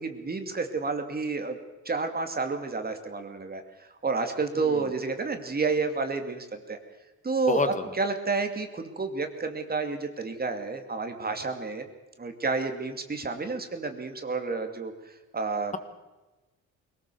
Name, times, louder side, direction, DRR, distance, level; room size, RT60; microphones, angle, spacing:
voice 1, 0.0-1.6 1.8-6.8 7.2-11.8 12.2-15.7, right 4 dB, 30° right, 6 dB, 2.5 m, -30 dB
voice 2, 7.5-7.8, left 4 dB, 25° left, 10 dB, 1.9 m, -28 dB
21.5 x 19.0 x 7.0 m, 1.1 s
cardioid pair, 90°, 30 cm